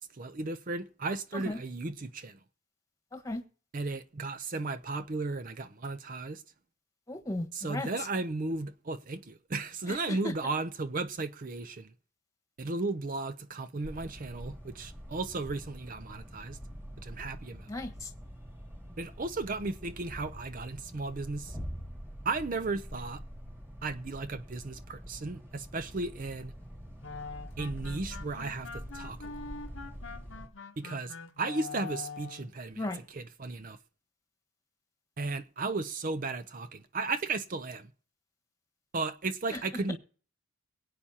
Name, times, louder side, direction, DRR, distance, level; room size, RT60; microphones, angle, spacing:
voice 1, 0.1-2.4 3.7-6.4 7.5-11.9 12.6-16.6 17.0-17.7 19.0-21.6 22.2-23.2 23.8-26.5 27.6-29.4 30.8-33.8 35.2-37.9 38.9-40.0, right 3 dB, 40° right, 0.5 m, -35 dB
voice 2, 7.1-8.1 9.9-10.3 17.7-18.1 32.7-33.0 39.5-39.6, left 2 dB, 15° left, 1.4 m, -36 dB
sound 1, 13.8-30.5, equal, 10° right, 2.1 m, -45 dB
sound 2, 27.0-32.6, left 4 dB, 60° left, 0.9 m, -44 dB
22.5 x 8.7 x 2.8 m
head